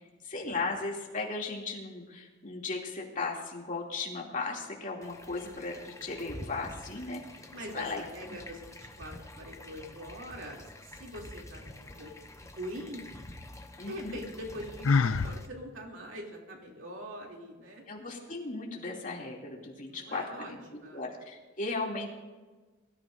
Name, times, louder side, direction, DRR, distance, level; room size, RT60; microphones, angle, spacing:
voice 1, 0.2-7.4 7.7-8.0 13.8-14.2 17.9-20.6 20.9-22.1, left 3 dB, 45° left, -1 dB, 2.7 m, -36 dB
sound 1, 5.0-15.5, left 1 dB, 15° left, 1.0 m, -48 dB
voice 2, 7.5-12.2 12.6-13.1 13.8-17.8 19.9-21.0, equal, 75° right, 0 dB, 2.9 m, -43 dB
Sigh, 14.8-15.4, left 4 dB, 85° left, 0.5 m, -24 dB
22.5 x 14.0 x 2.6 m, 1.3 s
head